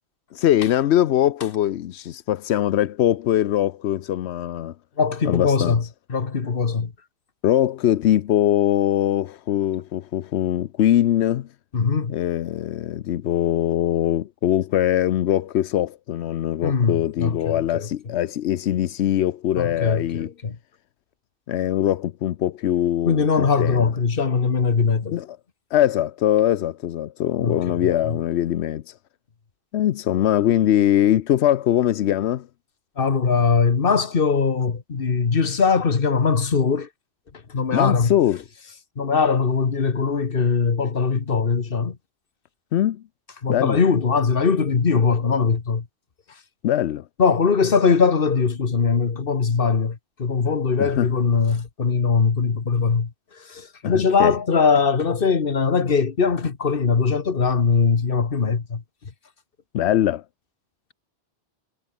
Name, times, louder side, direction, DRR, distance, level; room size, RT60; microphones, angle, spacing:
voice 1, 0.3-4.7 5.3-5.8 7.4-11.5 12.1-20.3 21.5-23.8 25.1-25.3 25.7-28.9 29.7-32.5 37.7-38.4 42.7-43.0 43.5-43.8 46.6-47.0 50.8-51.1 53.8-54.3 59.7-60.2, left 12 dB, 90° left, 0.9 m, -22 dB
voice 2, 5.0-6.9 11.7-12.1 16.6-17.9 19.6-20.6 23.1-25.2 27.4-28.2 33.0-36.9 37.5-38.1 39.0-42.0 43.4-45.9 47.2-53.1 53.4-58.8, left 5 dB, 60° left, 1.6 m, -21 dB
omnidirectional pair, 1.1 m